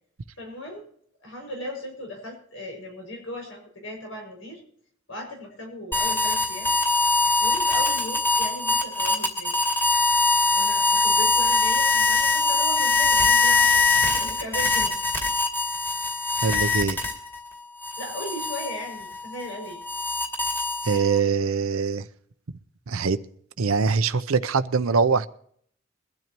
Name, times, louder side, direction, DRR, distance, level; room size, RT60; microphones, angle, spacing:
voice 1, 0.4-0.9 1.2-4.6 5.1-6.7 7.4-9.6 10.1-10.2 10.5-14.9 18.0-19.8, left 1 dB, 75° left, 1 dB, 6.4 m, -37 dB
sound 1, 5.9-17.4 17.8-21.2, left 3 dB, 10° left, 2.5 m, -22 dB
voice 2, 16.4-17.0 20.8-22.0 22.9-23.2 23.6-25.3, right 5 dB, 85° right, 12 dB, 0.7 m, -23 dB
22.5 x 12.5 x 3.0 m, 0.63 s
head